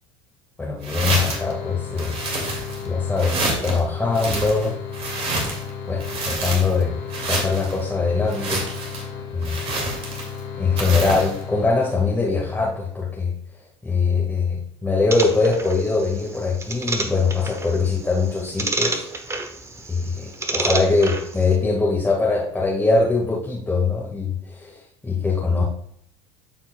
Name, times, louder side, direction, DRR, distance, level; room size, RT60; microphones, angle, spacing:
voice 1, 0.6-2.2 2.8-4.8 5.9-7.0 7.3-8.6 9.3-9.6 10.6-13.3 13.8-19.1 19.9-25.6, left 4 dB, 15° left, -3 dB, 1.7 m, -22 dB
sound 1, 0.8-1.5 2.0-2.9 3.2-3.8 4.1-5.7 6.0-6.8 7.1-7.7 8.3-9.0 9.4-10.4 10.8-11.4, right 2 dB, 45° right, 2.3 m, -28 dB
sound 2, 1.2-12.5, left 6 dB, 55° left, 2.0 m, -34 dB
sound 3, 15.1-21.6, right 3 dB, 20° right, 1.0 m, -30 dB
13.0 x 4.4 x 2.3 m, 0.66 s
hypercardioid pair, 85°, 14 cm